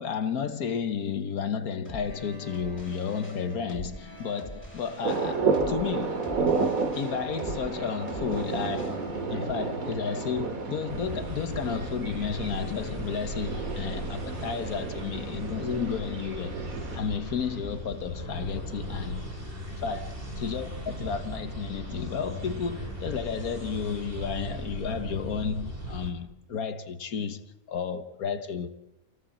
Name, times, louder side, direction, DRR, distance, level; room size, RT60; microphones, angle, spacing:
voice 1, 0.0-6.3 7.0-9.0 9.3-16.5 16.9-19.2 19.7-20.0 20.4-27.4 27.7-28.7, left 6 dB, 80° left, 1.6 m, -32 dB
sound 1, 1.8-11.0, left 1 dB, 5° left, 6.1 m, -44 dB
sound 2, 5.0-17.0, right 4 dB, 70° right, 2.6 m, -31 dB
sound 3, 10.9-26.1, equal, 35° right, 4.0 m, -38 dB
27.0 x 18.5 x 7.5 m
omnidirectional pair, 1.5 m